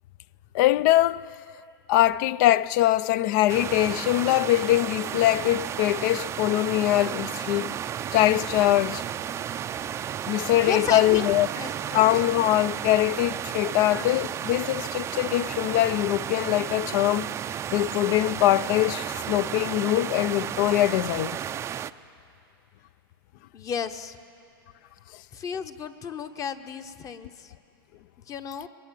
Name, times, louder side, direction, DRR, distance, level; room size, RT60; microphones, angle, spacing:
voice 1, 0.5-1.3 1.9-7.8 8.1-9.0 10.3-11.5 11.9-17.3 17.7-21.4, left 15 dB, 50° left, 0.5 m, -22 dB
sound 1, 3.5-21.9, right 9 dB, 20° right, 0.5 m, -33 dB
voice 2, 10.6-12.0 23.5-24.2 25.3-27.5 28.3-28.7, left 6 dB, 25° left, 1.0 m, -33 dB
21.5 x 21.5 x 7.6 m
hypercardioid pair, 125°, 13 cm